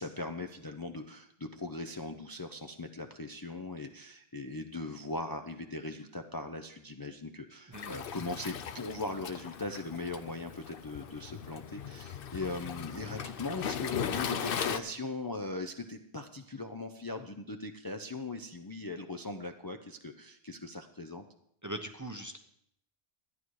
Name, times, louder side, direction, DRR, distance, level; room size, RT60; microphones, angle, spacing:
voice 1, 0.0-21.2, left 2 dB, 25° left, 5 dB, 0.5 m, -39 dB
Waves surf, 7.7-14.8, left 8 dB, 65° left, 0.8 m, -38 dB
voice 2, 7.7-8.0 21.6-22.4, right 1 dB, 20° right, 5 dB, 0.7 m, -40 dB
13.0 x 9.8 x 4.7 m, 0.71 s
omnidirectional pair, 1.0 m